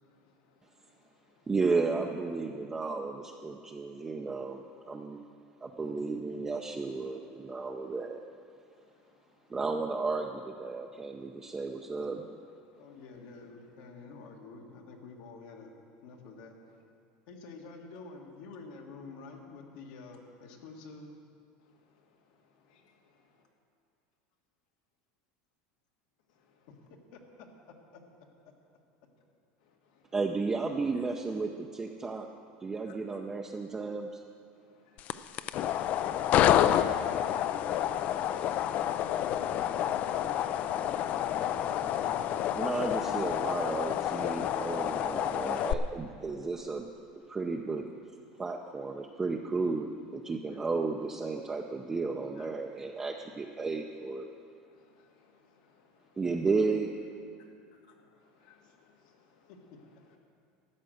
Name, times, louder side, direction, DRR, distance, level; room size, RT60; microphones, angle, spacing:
voice 1, 0.0-1.5 8.7-9.6 12.6-12.8 21.6-23.3 26.3-26.7 29.6-30.1 32.6-32.9 34.5-37.0 45.4-45.7 48.3-48.4 52.4-52.5 54.6-56.2 57.8-59.5 59.8-60.2, left 6 dB, 90° left, 1 dB, 1.9 m, -65 dB
voice 2, 1.5-5.2 5.6-8.2 9.5-12.4 30.1-32.3 32.6-34.2 42.6-46.9 47.3-47.9 48.4-54.3 56.2-56.9, right 4 dB, 15° right, 2 dB, 0.5 m, -33 dB
voice 3, 12.8-15.7 16.0-16.5 17.3-21.1 26.9-28.0 28.4-28.5 37.5-38.3 38.6-42.6 59.5-59.8, left 4 dB, 70° left, 2 dB, 1.7 m, -49 dB
sound 1, 35.0-45.7, left 11 dB, 40° left, 0.4 m, -29 dB
13.0 x 8.9 x 6.4 m, 2.4 s
supercardioid pair, 140°, 4 cm